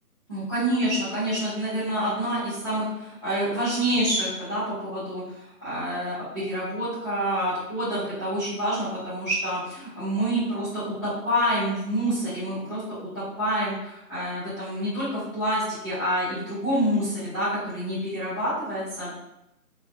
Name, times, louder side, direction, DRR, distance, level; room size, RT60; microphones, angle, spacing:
voice 1, 0.3-12.8 13.1-19.1, equal, 20° right, -18 dB, 1.0 m, -27 dB
3.3 x 2.4 x 2.8 m, 0.86 s
figure-of-eight pair, 175°, 46 cm